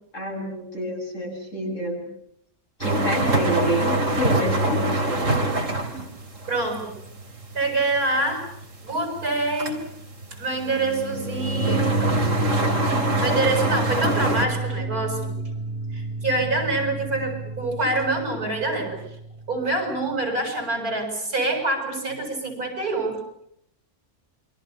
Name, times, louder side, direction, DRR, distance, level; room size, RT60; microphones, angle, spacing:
voice 1, 0.1-2.1 2.8-5.2, right 1 dB, 55° left, 1 dB, 7.8 m, -28 dB
sound 1, 2.8-14.5, right 1 dB, 60° right, 3.3 m, -25 dB
voice 2, 6.5-6.9 7.5-8.4 8.8-9.8 10.4-12.0 13.2-15.3 15.9-19.0 19.5-23.2, right 2 dB, 85° right, 4 dB, 8.0 m, -26 dB
sound 2, 11.6-20.3, right 3 dB, 30° right, 3.8 m, -31 dB
28.0 x 23.5 x 7.1 m, 0.74 s
omnidirectional pair, 1.5 m